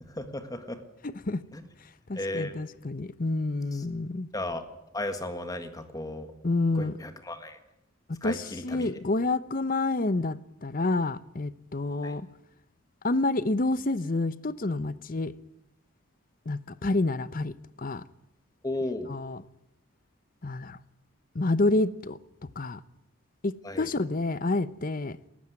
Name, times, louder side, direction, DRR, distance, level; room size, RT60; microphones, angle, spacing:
voice 1, 0.0-0.8 1.5-1.6 2.1-2.6 3.7-3.8 4.3-4.6 4.9-6.3 6.7-7.6 8.2-8.9 12.0-12.2 18.6-19.1 23.6-23.9, left 1 dB, 20° left, 1.6 m, -35 dB
voice 2, 1.0-1.4 2.1-4.3 6.4-6.9 8.2-12.3 13.0-15.3 16.5-17.5 17.8-18.0 19.1-19.4 20.4-20.8 21.3-22.2 22.6-22.8 23.4-25.2, left 2 dB, 45° left, 0.7 m, -28 dB
18.5 x 15.0 x 9.5 m
head